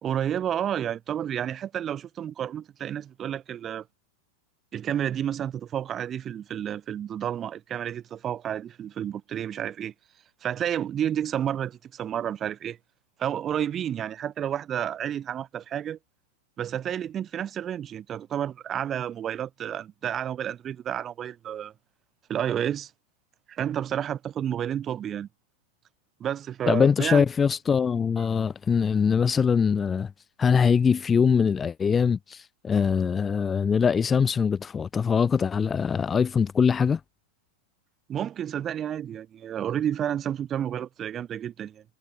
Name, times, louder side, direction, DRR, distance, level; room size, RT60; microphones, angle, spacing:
voice 1, 0.0-3.8 4.7-9.9 10.4-12.8 13.2-16.0 16.6-21.7 22.3-22.9 23.5-25.3 26.2-27.3 28.2-28.3 38.1-41.8, right 10 dB, 25° right, 4.7 m, -30 dB
voice 2, 26.7-30.1 30.4-37.0, left 6 dB, 20° left, 0.5 m, -22 dB
figure-of-eight pair, 95°, 0 cm